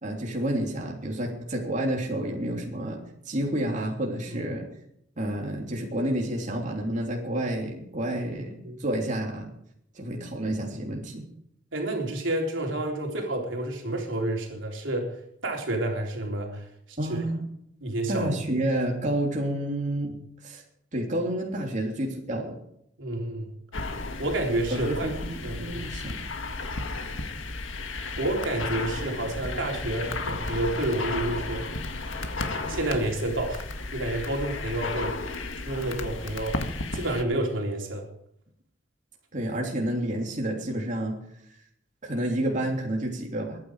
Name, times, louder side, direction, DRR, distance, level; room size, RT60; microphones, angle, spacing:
voice 1, 0.0-3.0 3.2-4.6 5.2-9.5 9.9-11.2 17.0-17.4 18.1-20.1 20.4-20.6 20.9-22.6 24.7-26.2 39.3-41.2 42.0-43.6, right 1 dB, 40° right, 0 dB, 3.3 m, -29 dB
voice 2, 11.7-15.1 15.4-17.2 17.8-18.3 23.0-23.5 24.2-25.1 25.4-25.8 28.2-31.6 32.6-33.6 33.9-35.1 35.6-36.6 36.9-38.1, right 1 dB, 80° right, 1 dB, 3.6 m, -29 dB
sound 1, 23.7-37.2, left 3 dB, 90° left, 1.7 m, -34 dB
22.0 x 9.7 x 5.0 m, 0.73 s
head